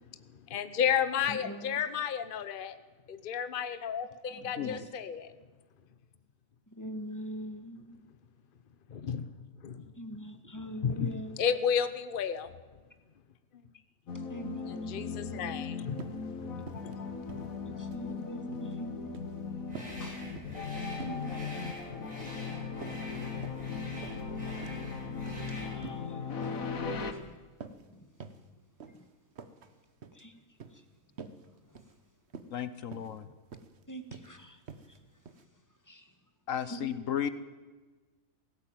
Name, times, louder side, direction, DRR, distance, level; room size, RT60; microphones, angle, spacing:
voice 1, 0.5-2.7 3.1-5.3 8.9-9.3 9.6-9.9 10.8-11.1 11.4-12.5 14.9-17.8, left 8 dB, 45° left, 10 dB, 1.0 m, -32 dB
voice 2, 1.3-1.8 4.3-5.0 6.7-7.9 10.0-11.4 14.1-15.7 17.7-19.1 19.6-19.7 20.0-20.3 20.8-21.4 23.9-24.1 25.5-26.7 26.9-27.3 27.9-28.1 28.9-29.1 30.1-30.4 30.7-30.8 31.3-32.0 33.9-34.6 34.9-35.0 35.4-35.5 35.8-36.2 36.7-36.8, equal, 15° left, 7 dB, 1.7 m, -44 dB
voice 3, 4.6-4.9 32.5-33.3 36.5-37.3, left 9 dB, 75° left, 13 dB, 1.3 m, -34 dB
sound 1, 14.1-27.1, left 5 dB, 90° left, 1.9 m, -38 dB
sound 2, 15.9-16.2 16.6-16.9 17.2-18.1 18.4-18.7 19.1-19.3 19.7-20.0 20.3-20.7 21.0-21.2 21.6-21.9 22.2-22.5 22.8-23.7 24.0-24.2 24.6-24.8 25.2-25.4 25.8-26.1 26.4-26.7 27.0-27.2 27.6-27.9 28.2-28.4 28.8-29.0 29.3-29.7 30.0-30.2 30.6-30.8 31.2-31.4 31.7-31.9 32.3-32.6 32.9-33.2 33.5-33.8 34.1-34.3 34.7-35.0 35.3-35.4, right 5 dB, 55° right, 1.4 m, -47 dB
sound 3, 19.7-25.8, equal, 30° right, 7.5 m, -46 dB
18.0 x 16.0 x 9.1 m, 1.3 s
omnidirectional pair, 1.4 m